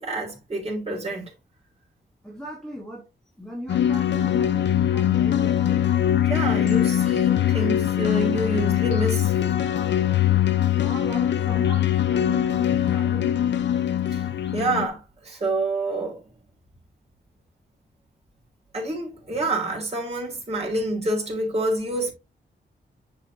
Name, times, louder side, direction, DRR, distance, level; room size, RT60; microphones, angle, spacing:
voice 1, 0.0-1.2 6.2-9.3 14.1-16.2 18.7-22.1, right 2 dB, 35° right, 3.3 m, -27 dB
voice 2, 2.2-3.1 3.4-5.9 10.7-13.6, right 1 dB, 5° left, 1.5 m, -38 dB
sound 1, 3.7-14.9, left 10 dB, 85° left, 0.7 m, -22 dB
10.5 x 3.7 x 2.9 m
wide cardioid pair, 130°, 18 cm